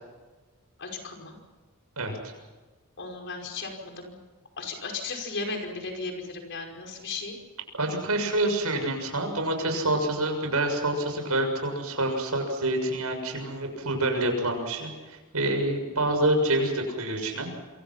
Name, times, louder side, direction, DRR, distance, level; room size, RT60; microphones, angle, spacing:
voice 1, 0.8-1.4 3.0-4.2 4.6-7.4, left 3 dB, 55° left, 3 dB, 5.3 m, -35 dB
voice 2, 2.0-2.3 7.7-17.5, right 1 dB, 85° right, 5 dB, 6.9 m, -27 dB
28.0 x 24.0 x 5.8 m, 1.3 s
head